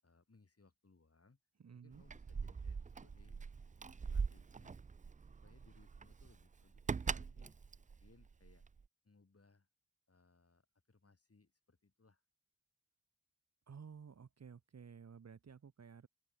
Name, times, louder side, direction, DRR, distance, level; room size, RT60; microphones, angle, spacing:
voice 1, 0.0-1.4 1.7-3.4 3.6-4.8 5.4-8.6 9.0-9.7 10.1-12.2, left 3 dB, 45° left, 7.7 m, -68 dB
voice 2, 1.6-2.0 13.7-16.1, right 6 dB, 50° right, 1.1 m, -54 dB
Keys jangling, 1.9-8.8, right 5 dB, 25° right, 0.4 m, -42 dB
open air
cardioid pair, 40°, 33 cm